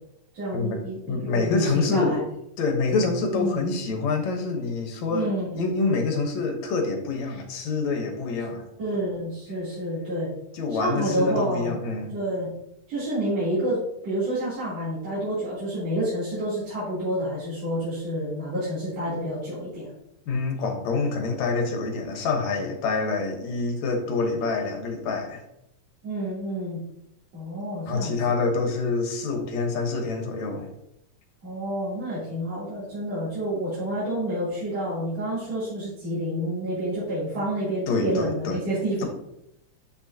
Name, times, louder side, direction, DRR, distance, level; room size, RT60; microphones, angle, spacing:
voice 1, 0.3-2.2 3.3-3.7 5.1-5.6 8.8-10.3 10.8-11.8 12.1-12.5 12.9-19.9 26.0-26.8 27.3-28.4 31.4-39.1, right 1 dB, 60° right, -12 dB, 4.2 m, -29 dB
voice 2, 1.1-2.2 2.6-8.6 10.5-12.1 20.3-25.4 27.9-30.7 37.9-38.6, left 3 dB, 75° left, 3 dB, 2.4 m, -26 dB
8.6 x 6.2 x 2.8 m, 0.79 s
omnidirectional pair, 3.3 m